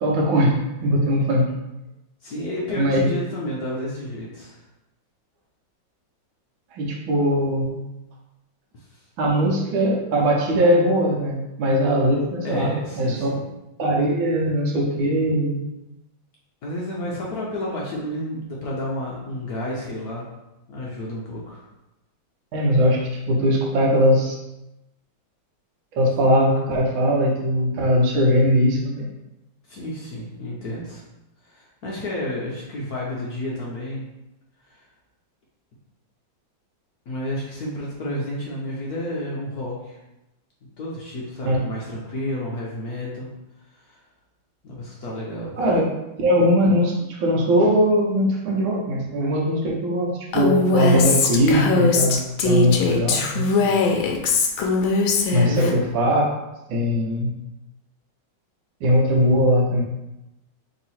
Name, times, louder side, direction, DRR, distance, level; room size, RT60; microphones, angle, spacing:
voice 1, 0.0-1.5 2.7-3.0 6.7-7.8 9.2-13.3 13.8-15.6 22.5-24.4 25.9-29.1 41.4-41.6 45.6-45.8 46.2-53.5 55.3-56.3 56.7-57.3 58.8-59.8, equal, 75° right, -2 dB, 1.6 m, -20 dB
voice 2, 2.2-4.6 12.4-13.4 16.6-20.3 20.7-21.6 29.7-31.0 31.4-34.1 34.7-34.8 37.1-40.0 40.6-43.3 43.7-44.0 44.6-45.6 53.5-54.1 55.3-55.8, left 1 dB, 60° left, -4 dB, 1.1 m, -31 dB
Female speech woman speaking, 50.3-55.7, left 4 dB, 85° left, 1.4 m, -21 dB
3.7 x 3.0 x 4.2 m, 0.93 s
omnidirectional pair, 2.2 m